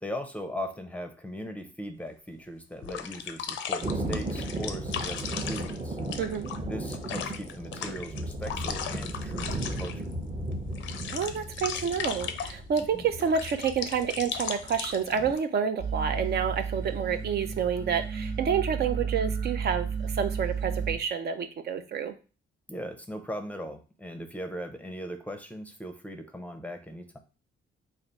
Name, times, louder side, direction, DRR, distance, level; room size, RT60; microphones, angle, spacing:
voice 1, 0.0-6.0 6.7-10.2 12.9-13.1 22.7-27.2, equal, 5° left, 7 dB, 0.5 m, -39 dB
sound 1, 2.1-2.2 2.8-10.1 10.5-12.8 13.2-15.4, left 8 dB, 75° left, 0.5 m, -37 dB
Thunder, 3.8-15.3, right 1 dB, 25° right, 0.7 m, -36 dB
voice 2, 6.2-6.5 11.1-22.1, right 7 dB, 55° right, 8 dB, 0.5 m, -29 dB
sound 2, 15.8-21.0, right 6 dB, 70° right, 1.0 m, -32 dB
3.3 x 2.4 x 4.0 m, 0.34 s
cardioid pair, 90°, 20 cm